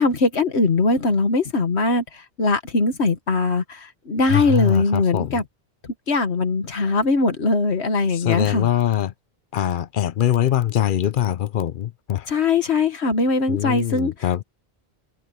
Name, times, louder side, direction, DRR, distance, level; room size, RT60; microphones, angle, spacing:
voice 1, 0.0-5.4 6.1-8.7 12.3-14.1, left 3 dB, 90° left, 1.9 m, -21 dB
voice 2, 4.3-5.4 8.1-9.1 9.5-12.3 13.5-14.4, left 11 dB, 60° left, 0.7 m, -22 dB
omnidirectional pair, 1.1 m